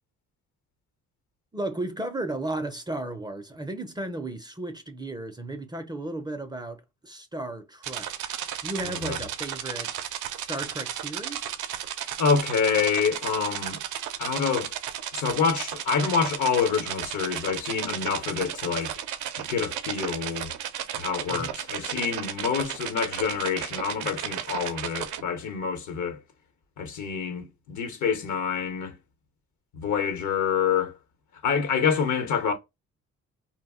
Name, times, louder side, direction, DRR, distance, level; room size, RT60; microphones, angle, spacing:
voice 1, 1.5-8.3 8.6-9.9 10.4-11.5 21.3-21.5, right 2 dB, 15° right, 0.4 m, -34 dB
sound 1, 7.8-25.2, right 10 dB, 80° right, 0.5 m, -34 dB
voice 2, 8.8-9.2 12.2-13.8 14.2-14.7 15.1-18.9 19.4-20.5 20.9-26.2 26.8-28.9 29.7-30.9 31.4-32.5, left 6 dB, 75° left, 0.9 m, -27 dB
2.3 x 2.0 x 3.5 m
cardioid pair, 90°, 30 cm